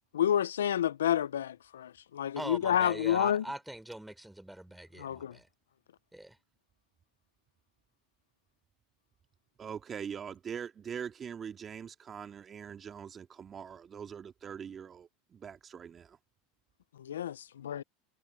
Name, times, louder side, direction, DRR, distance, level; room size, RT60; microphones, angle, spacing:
voice 1, 0.1-3.4 5.0-5.4 17.0-17.8, left 10 dB, 85° left, 0.5 m, -29 dB
voice 2, 2.4-5.5 6.1-6.4, right 1 dB, 5° right, 4.5 m, -42 dB
voice 3, 9.6-16.2, right 7 dB, 30° right, 2.3 m, -42 dB
hypercardioid pair, 95°, 0 cm